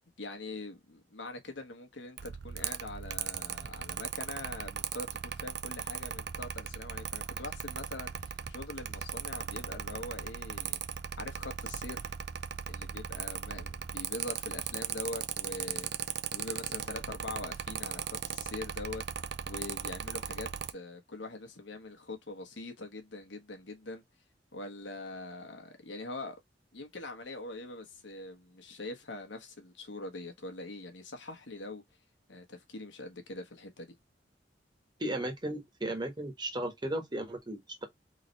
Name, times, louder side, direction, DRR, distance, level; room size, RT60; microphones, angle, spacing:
voice 1, 0.2-10.8 11.2-12.1 12.7-15.9 16.3-19.0 19.5-24.0 24.5-26.4 26.7-31.8 32.3-33.9, left 2 dB, 90° left, 1.3 m, -43 dB
Mechanical fan, 2.2-20.7, right 8 dB, 65° right, 0.5 m, -38 dB
voice 2, 35.0-37.8, right 1 dB, 25° right, 1.4 m, -35 dB
3.9 x 3.3 x 4.0 m
head